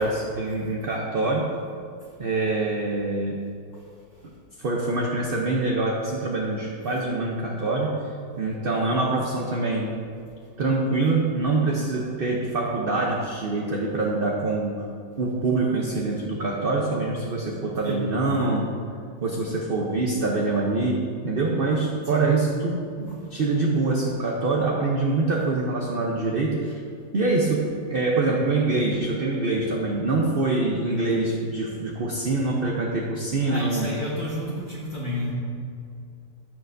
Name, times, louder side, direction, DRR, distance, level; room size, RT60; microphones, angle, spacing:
voice 1, 0.0-1.5 2.2-3.3 4.6-8.0 8.4-9.9 10.6-14.9 15.2-18.7 19.2-26.7 27.1-33.9, right 3 dB, 50° right, -1 dB, 0.7 m, -25 dB
voice 2, 33.4-35.3, left 1 dB, 30° left, -6 dB, 1.2 m, -31 dB
15.5 x 6.7 x 2.6 m, 2.4 s
omnidirectional pair, 1.9 m